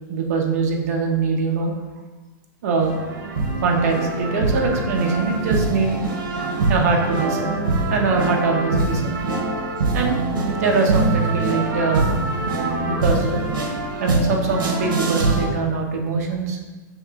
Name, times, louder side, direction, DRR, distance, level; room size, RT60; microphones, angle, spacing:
voice 1, 0.1-1.7 2.6-3.0 3.6-6.0 6.7-7.6 7.9-9.1 9.9-10.2 10.6-12.1 12.8-13.4 14.0-16.6, right 4 dB, 50° right, 2 dB, 0.6 m, -22 dB
sound 1, 2.8-15.5, right 2 dB, 85° right, 0.8 m, -23 dB
5.3 x 3.2 x 2.3 m, 1.3 s
supercardioid pair, 175°, 11 cm